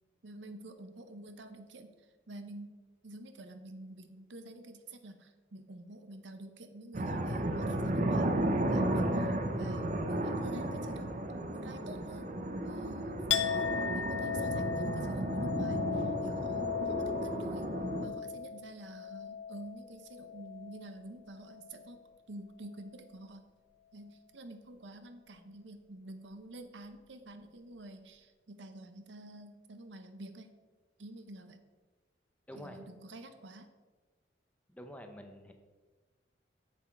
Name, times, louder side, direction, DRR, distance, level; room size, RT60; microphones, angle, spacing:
voice 1, 0.2-1.9 2.3-2.7 3.0-8.4 8.7-12.3 12.6-17.7 18.0-23.4 23.9-30.5 31.0-31.6 32.6-33.7, right 1 dB, 80° right, 8 dB, 0.8 m, -49 dB
sound 1, 6.9-18.1, right 1 dB, 45° right, 0.7 m, -33 dB
Chink clink, 13.3-21.0 21.3-22.0, left 8 dB, 85° left, 0.4 m, -37 dB
voice 2, 32.5-32.8 34.7-35.5, equal, 5° left, 5 dB, 0.7 m, -47 dB
7.1 x 7.0 x 4.6 m, 1.3 s
head